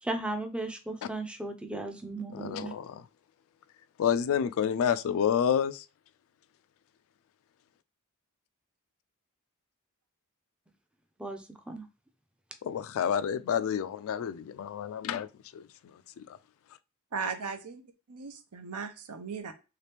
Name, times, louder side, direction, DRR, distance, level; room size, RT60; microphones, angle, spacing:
voice 1, 0.0-2.7 11.2-11.9, right 2 dB, 5° right, 0.4 m, -36 dB
voice 2, 2.3-3.0 4.0-5.8 12.6-15.3 15.5-15.6 16.2-16.3, left 8 dB, 65° left, 0.3 m, -29 dB
voice 3, 17.1-17.8 18.1-19.5, right 5 dB, 90° right, 0.7 m, -37 dB
3.2 x 2.9 x 3.3 m
head